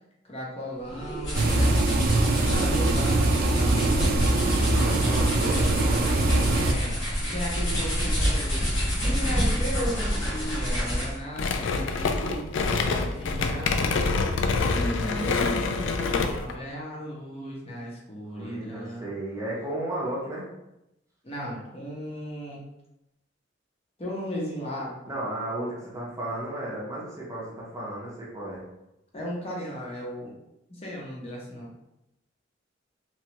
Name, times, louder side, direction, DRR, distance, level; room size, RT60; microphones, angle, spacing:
voice 1, 0.2-1.7 2.5-4.4 4.8-5.3 6.6-14.2 14.6-19.1 21.2-22.6 24.0-24.9 29.1-30.3 30.7-31.7, equal, 30° left, -4 dB, 0.8 m, -36 dB
sound 1, 0.9-11.3, equal, 85° left, 1.1 m, -28 dB
sound 2, 1.3-6.7, right 2 dB, 50° right, 0.4 m, -23 dB
voice 2, 4.4-6.4 18.3-20.5 25.0-28.6, right 1 dB, 15° right, -5 dB, 0.7 m, -34 dB
sound 3, 11.4-16.5, left 4 dB, 70° left, 0.3 m, -26 dB
3.0 x 2.3 x 2.8 m, 0.88 s
head